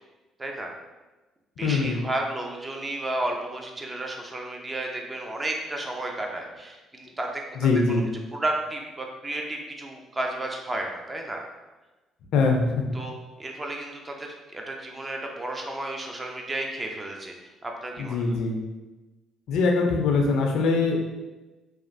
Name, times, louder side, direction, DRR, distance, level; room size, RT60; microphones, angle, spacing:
voice 1, 0.4-0.7 1.6-7.4 7.9-8.0 8.3-11.4 12.9-17.3 17.6-18.4, right 2 dB, 25° right, 1 dB, 0.6 m, -32 dB
voice 2, 1.6-2.0 7.6-8.1 12.3-12.8 18.0-18.6 19.5-21.1, left 4 dB, 70° left, 1 dB, 0.4 m, -23 dB
3.0 x 2.4 x 2.6 m, 1.1 s
hypercardioid pair, 55°, 0 cm